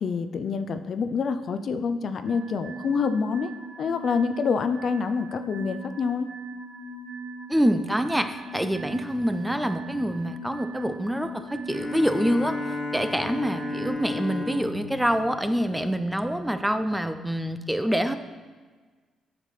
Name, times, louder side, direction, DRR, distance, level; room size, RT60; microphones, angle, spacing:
voice 1, 0.0-3.5 3.8-6.3, left 5 dB, 55° left, 10 dB, 0.4 m, -27 dB
sound 1, 2.3-13.9, right 1 dB, 85° right, 1.2 m, -39 dB
voice 2, 7.5-12.6 12.9-18.1, equal, 5° right, 9 dB, 0.4 m, -26 dB
Bowed string instrument, 11.7-16.4, left 3 dB, 20° left, 1.6 m, -34 dB
8.9 x 5.8 x 3.2 m, 1.4 s
cardioid pair, 90°, 0 cm